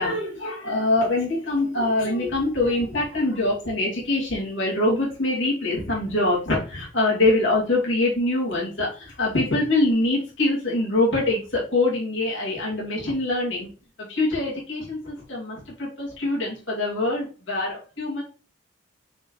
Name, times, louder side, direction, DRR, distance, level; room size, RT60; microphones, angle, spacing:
voice 1, 0.0-13.7 14.0-18.2, left 2 dB, 60° left, -4 dB, 2.7 m, -24 dB
6.3 x 4.8 x 3.2 m, 0.38 s
head